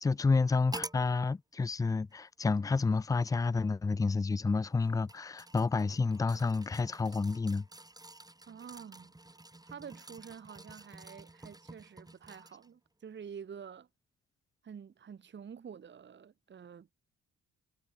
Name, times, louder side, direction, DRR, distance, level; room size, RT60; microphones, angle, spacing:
voice 1, 0.0-7.7, left 4 dB, 10° left, 0.3 m, -29 dB
sound 1, 0.7-1.1 2.1-2.2 4.6-12.7 13.2-13.3, right 2 dB, 10° right, 4.8 m, -49 dB
voice 2, 8.5-9.1 9.6-13.9 14.6-16.9, right 7 dB, 40° right, 1.2 m, -48 dB
cardioid pair, 90°, 30 cm